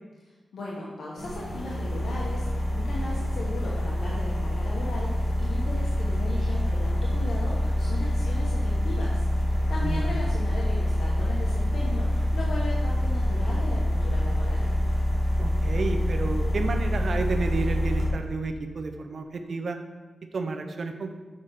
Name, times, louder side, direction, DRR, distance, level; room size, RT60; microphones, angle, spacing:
voice 1, 0.2-14.7, left 2 dB, 85° left, -5 dB, 1.2 m, -38 dB
sound 1, 1.2-18.1, equal, 65° left, 1.8 m, -26 dB
voice 2, 15.4-19.8 20.3-21.1, right 3 dB, 65° right, 6 dB, 0.8 m, -31 dB
7.4 x 5.7 x 4.8 m, 1.3 s
cardioid pair, 75°, 0 cm